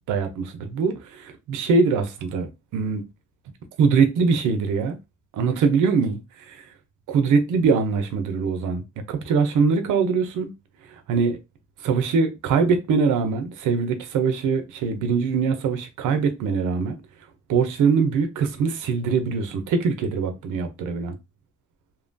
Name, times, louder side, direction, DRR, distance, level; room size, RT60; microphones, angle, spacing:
voice 1, 0.1-3.0 3.8-5.0 5.3-6.2 6.5-6.6 7.1-8.8 9.1-10.5 11.1-11.4 11.8-17.0 17.5-21.2, right 5 dB, 85° right, 0.7 m, -22 dB
2.8 x 2.2 x 2.5 m
cardioid pair, 90°, 30 cm